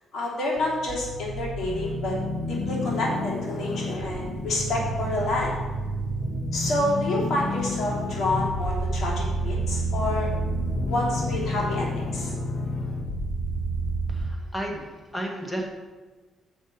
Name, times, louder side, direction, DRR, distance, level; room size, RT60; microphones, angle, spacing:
voice 1, 0.1-2.2 2.5-5.5 6.5-10.3 10.9-12.3, left 1 dB, 60° left, -4 dB, 2.8 m, -28 dB
sound 1, 0.6-14.3, equal, 45° left, 1.2 m, -29 dB
voice 2, 14.1-15.7, equal, 10° left, 1 dB, 1.6 m, -33 dB
6.4 x 5.4 x 6.0 m, 1.3 s
cardioid pair, 90°, 0 cm